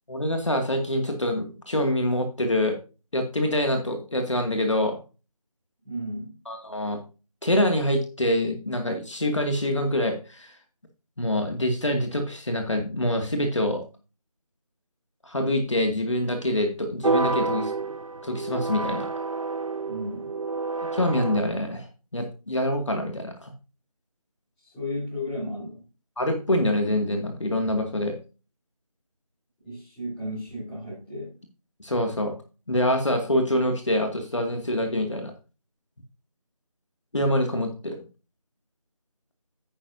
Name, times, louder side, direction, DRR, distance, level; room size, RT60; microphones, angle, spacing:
voice 1, 0.1-2.8 3.1-5.0 6.5-7.0 7.4-10.6 11.2-13.8 15.2-17.7 18.2-19.1 20.9-21.9 22.1-23.5 26.2-28.2 31.8-32.3 32.7-35.3 37.1-38.0, left 1 dB, 55° left, 5 dB, 2.3 m, -25 dB
voice 2, 5.8-6.3 19.8-20.3 24.6-25.8 29.6-31.3, left 1 dB, ahead, -14 dB, 3.4 m, -34 dB
sound 1, 17.0-21.4, right 3 dB, 65° right, 0.8 m, -29 dB
10.5 x 9.4 x 2.7 m, 0.32 s
figure-of-eight pair, 175°, 19 cm